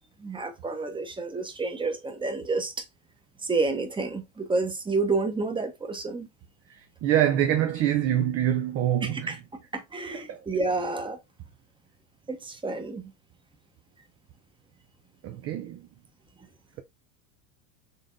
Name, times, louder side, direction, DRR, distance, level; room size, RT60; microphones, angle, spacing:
voice 1, 0.2-2.8 3.4-6.3 9.0-9.4 9.7-11.2 12.3-13.1, right 3 dB, 10° right, 0.8 m, -29 dB
voice 2, 7.0-9.3 10.1-10.4 15.2-15.8, right 11 dB, 30° right, 0.4 m, -25 dB
3.9 x 3.4 x 2.5 m
supercardioid pair, 100°, 50 cm